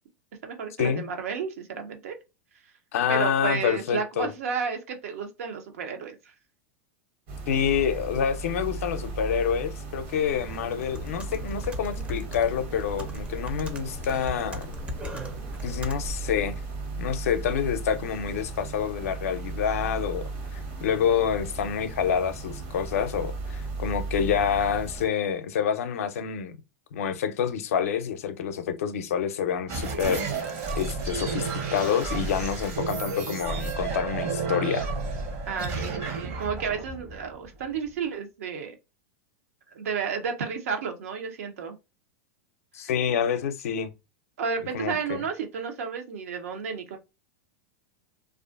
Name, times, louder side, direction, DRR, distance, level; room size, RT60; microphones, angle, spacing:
voice 1, 0.4-2.2 3.1-6.2 35.5-38.7 39.7-41.8 44.4-47.0, right 6 dB, 75° right, 0.6 m, -32 dB
voice 2, 2.9-4.3 7.5-14.7 15.6-16.6 17.0-26.6 26.9-30.3 30.8-34.9 42.7-43.9 44.7-45.2, left 8 dB, 80° left, 0.4 m, -27 dB
sound 1, 7.3-25.1, right 3 dB, 55° right, 1.0 m, -36 dB
Computer keyboard, 10.2-16.4, equal, 15° right, 0.4 m, -39 dB
sound 2, 29.7-37.9, right 4 dB, 40° right, 0.7 m, -31 dB
2.4 x 2.4 x 2.3 m
hypercardioid pair, 120°, 8 cm